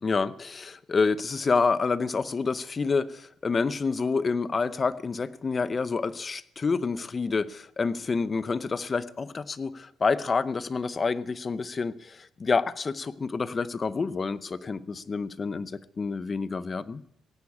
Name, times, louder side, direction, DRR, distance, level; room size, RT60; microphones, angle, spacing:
voice 1, 0.0-15.7 16.0-17.0, left 4 dB, 35° left, 17 dB, 0.8 m, -28 dB
17.0 x 9.7 x 8.6 m, 0.71 s
cardioid pair, 105°, 0 cm